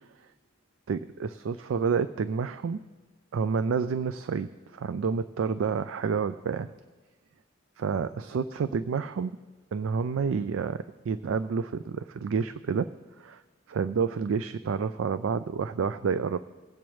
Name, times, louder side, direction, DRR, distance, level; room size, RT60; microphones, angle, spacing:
voice 1, 0.9-2.8 3.3-6.7 7.8-9.4 9.7-12.9 13.2-13.4 13.7-16.4, right 5 dB, 80° right, 12 dB, 0.4 m, -29 dB
21.5 x 8.6 x 3.1 m, 1.4 s
head